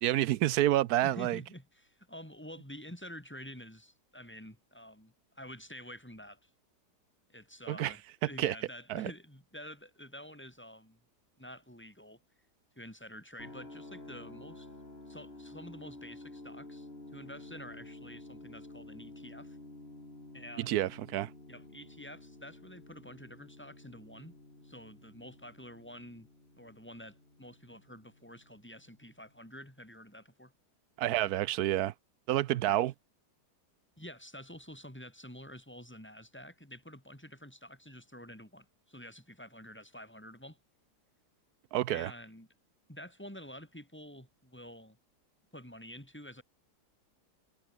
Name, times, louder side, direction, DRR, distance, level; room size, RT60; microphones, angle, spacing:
voice 1, 0.0-1.4 7.7-7.9 8.4-8.5 8.9-9.1 20.6-21.3 31.0-31.9 32.3-32.9 41.7-42.1, right 14 dB, 75° right, 1.0 m, -29 dB
voice 2, 1.0-6.5 7.3-11.0 11.4-12.2 12.8-14.7 15.1-19.6 20.3-20.8 21.5-24.3 24.6-26.3 26.6-30.5 32.5-32.8 34.0-40.6 41.9-42.5 42.9-45.0 45.5-46.4, equal, 5° left, 6.0 m, -49 dB
sound 1, 13.4-29.3, left 2 dB, 35° left, 5.2 m, -51 dB
omnidirectional pair, 1.8 m